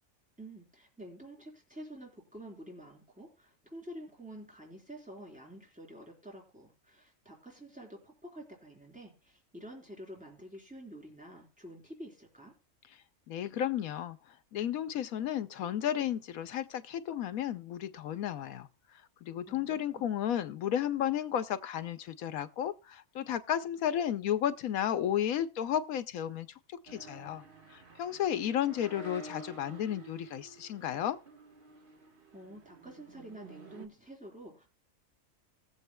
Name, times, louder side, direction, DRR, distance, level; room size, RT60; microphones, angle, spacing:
voice 1, 0.4-12.5 19.5-20.2 32.3-34.7, right 1 dB, 5° right, 3.9 m, -49 dB
voice 2, 13.3-14.2 14.5-18.7 19.2-26.5 26.8-27.4 27.7-31.2, left 10 dB, 75° left, 1.2 m, -33 dB
sound 1, 26.9-33.9, right 3 dB, 40° right, 1.3 m, -51 dB
19.5 x 7.4 x 2.2 m
omnidirectional pair, 1.5 m